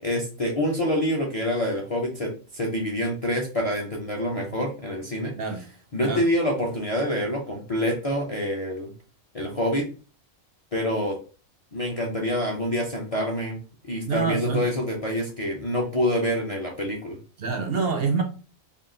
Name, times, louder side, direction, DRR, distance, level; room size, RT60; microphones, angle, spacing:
voice 1, 0.0-5.3 5.9-8.9 9.3-9.8 10.7-11.2 11.7-13.6 13.8-17.2, left 1 dB, 45° left, 0.4 m, -26 dB
voice 2, 14.1-14.6 17.4-18.2, right 5 dB, 65° right, 0.6 m, -26 dB
3.7 x 2.4 x 3.7 m
omnidirectional pair, 1.4 m